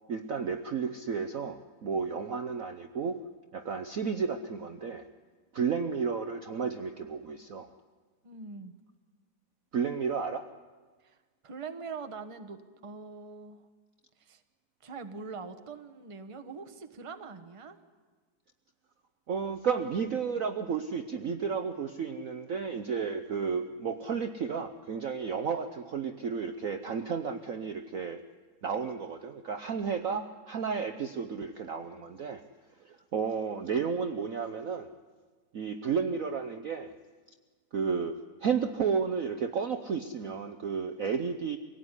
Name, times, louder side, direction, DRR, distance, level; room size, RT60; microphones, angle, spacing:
voice 1, 0.1-3.2 3.5-5.0 5.5-7.7 9.7-10.4 19.3-28.2 28.6-32.4 32.8-34.9 35.5-36.9 37.7-38.1 38.4-41.6, right 6 dB, 55° right, 8 dB, 1.0 m, -32 dB
voice 2, 8.2-8.8 11.0-11.2 11.4-13.6 14.2-14.4 14.8-17.8, right 4 dB, 20° right, 8 dB, 1.0 m, -43 dB
24.5 x 17.5 x 9.8 m, 1.4 s
omnidirectional pair, 2.2 m